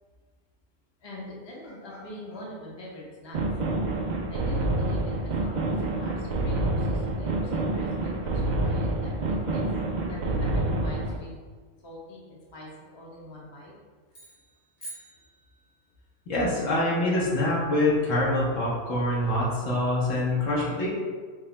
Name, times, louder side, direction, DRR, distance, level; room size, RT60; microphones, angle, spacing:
voice 1, 1.0-3.4 4.3-9.6 10.1-11.3 11.8-13.7, left 1 dB, 25° left, -5 dB, 0.8 m, -43 dB
sound 1, 3.3-11.2, right 2 dB, 70° right, 0.4 m, -27 dB
sound 2, 14.1-16.0, right 1 dB, 55° left, 1.6 m, -46 dB
voice 2, 16.3-20.9, left 1 dB, 75° left, -6 dB, 1.5 m, -25 dB
5.1 x 2.2 x 3.9 m, 1.5 s
omnidirectional pair, 1.3 m